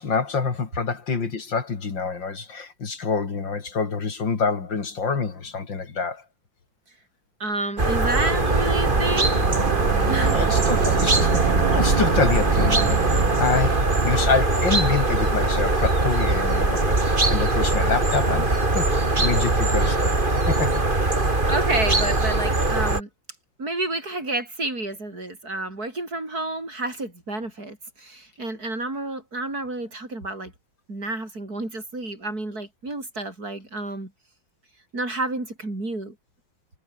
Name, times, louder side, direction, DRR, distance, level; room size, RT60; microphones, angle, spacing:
voice 1, 0.0-6.2 10.3-18.9 19.2-20.1 20.5-20.8, left 5 dB, 80° left, 3.6 m, -26 dB
voice 2, 7.4-9.3 10.1-10.4 21.2-23.1 23.6-30.5 30.9-34.1 34.9-36.1, right 2 dB, 55° right, 6.7 m, -30 dB
sound 1, 7.8-23.0, right 2 dB, 25° right, 3.4 m, -21 dB
sound 2, 7.9-14.4, right 10 dB, 80° right, 1.9 m, -27 dB
omnidirectional pair, 2.0 m